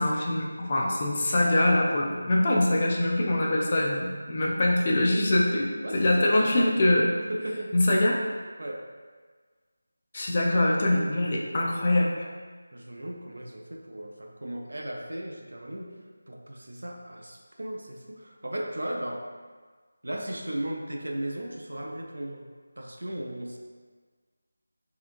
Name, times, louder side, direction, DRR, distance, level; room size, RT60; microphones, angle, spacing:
voice 1, 0.0-5.7 5.9-7.1 7.7-8.2 10.1-12.1, left 1 dB, 35° left, -2 dB, 0.4 m, -23 dB
voice 2, 5.8-6.7 7.3-7.7 8.6-8.9 12.7-16.0 16.3-19.3 20.0-22.5 22.8-23.6, right 1 dB, 80° right, 1 dB, 0.5 m, -36 dB
3.3 x 2.8 x 2.5 m, 1.5 s
figure-of-eight pair, 170°, 0 cm